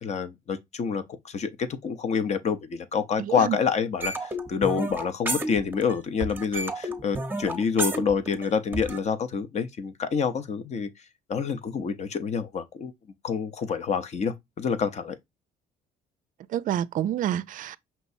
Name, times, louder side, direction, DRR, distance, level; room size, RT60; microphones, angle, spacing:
voice 1, 0.0-10.9 11.3-12.9 13.2-15.2, left 6 dB, 40° left, 0.7 m, -27 dB
voice 2, 3.2-3.6 16.5-17.8, right 11 dB, 50° right, 0.4 m, -28 dB
sound 1, 4.0-6.0 6.2-9.0, right 2 dB, 10° right, 0.8 m, -31 dB
5.7 x 3.0 x 2.6 m
cardioid pair, 110°, 17 cm